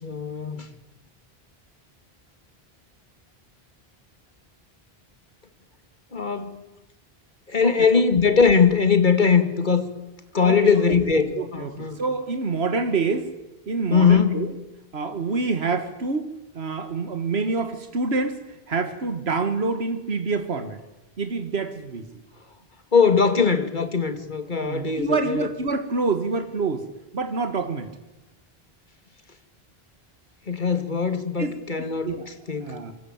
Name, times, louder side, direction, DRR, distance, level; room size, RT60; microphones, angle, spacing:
voice 1, 0.0-0.7 6.1-6.6 7.5-9.9 10.3-12.0 13.9-14.4 22.9-25.5 30.5-32.7, left 5 dB, 50° left, 9 dB, 2.4 m, -21 dB
voice 2, 11.1-13.3 13.7-14.5 14.9-16.3 16.6-18.4 18.7-20.8 21.2-22.1 24.6-26.8 27.1-27.9 31.4-31.5 31.8-32.2 32.6-32.9, right 4 dB, 85° right, 9 dB, 1.9 m, -27 dB
26.0 x 23.5 x 8.8 m, 0.96 s
omnidirectional pair, 1.0 m